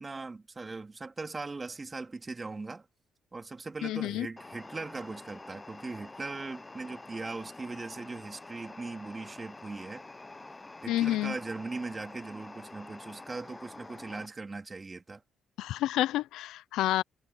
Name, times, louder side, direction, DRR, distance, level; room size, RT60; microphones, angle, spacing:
voice 1, 0.0-2.9 3.3-10.0 10.8-15.2, right 3 dB, 25° right, 2.9 m, -40 dB
voice 2, 3.8-4.3 10.9-11.3 15.6-17.0, left 14 dB, 90° left, 0.4 m, -29 dB
sound 1, 4.4-14.3, left 2 dB, 20° left, 0.7 m, -47 dB
cardioid pair, 90°, 0 cm